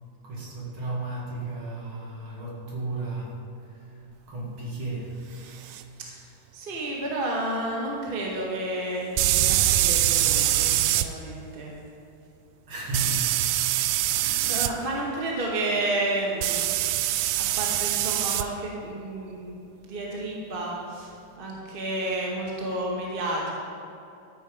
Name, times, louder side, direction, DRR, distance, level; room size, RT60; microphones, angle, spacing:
voice 1, 0.2-3.4 3.7-5.8 12.7-13.4 14.0-15.0, right 2 dB, 50° right, -4 dB, 2.7 m, -35 dB
sound 1, 5.7-5.8 9.2-11.1 12.9-14.7 16.4-18.5, right 13 dB, 80° right, 1.4 m, -23 dB
voice 2, 6.5-11.7 13.8-16.7 17.3-19.6 19.9-21.1 21.4-23.5, right 1 dB, 20° right, -3 dB, 1.6 m, -31 dB
13.5 x 9.4 x 5.1 m, 2.7 s
omnidirectional pair, 3.3 m